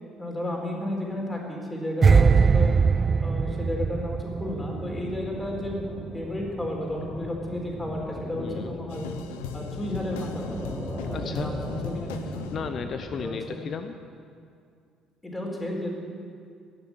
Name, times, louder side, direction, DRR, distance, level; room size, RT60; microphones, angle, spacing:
voice 1, 0.1-2.7 3.2-5.8 6.1-9.1 9.5-10.6 11.1-12.5 13.2-13.6 15.2-16.0, left 1 dB, 15° left, -1 dB, 4.3 m, -32 dB
sound 1, 2.0-5.2 5.5-5.7, right 5 dB, 35° right, 0.3 m, -21 dB
sound 2, 4.4-13.3, equal, 10° right, 3.6 m, -38 dB
voice 2, 8.4-8.7 11.1-11.6 12.5-14.0, left 6 dB, 50° left, 8 dB, 0.7 m, -34 dB
sound 3, 8.9-13.4, left 9 dB, 80° left, 0.7 m, -39 dB
18.0 x 7.2 x 9.8 m, 2.3 s
hypercardioid pair, 55°, 0 cm